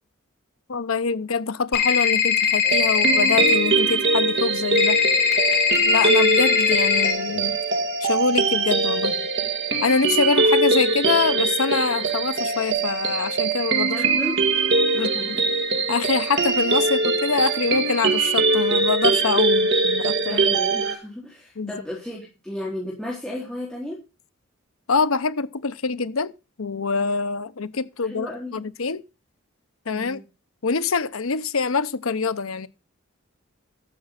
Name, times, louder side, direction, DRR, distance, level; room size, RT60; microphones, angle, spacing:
voice 1, 0.7-5.0 5.8-7.6 8.0-9.2 9.8-14.0 15.0-15.1 15.9-20.4 21.6-21.7 24.9-26.3 26.6-29.0 29.9-30.2 30.6-32.7, left 4 dB, 85° left, 0.8 m, -25 dB
sound 1, 1.7-3.5 4.8-7.1, left 8 dB, 50° left, 2.6 m, -20 dB
sound 2, 2.6-20.9, right 3 dB, 55° right, 2.0 m, -22 dB
voice 2, 13.8-14.4 14.9-15.5 20.2-24.0 28.1-28.6 29.9-30.2, left 1 dB, 5° left, 4.0 m, -34 dB
12.5 x 7.4 x 5.9 m
head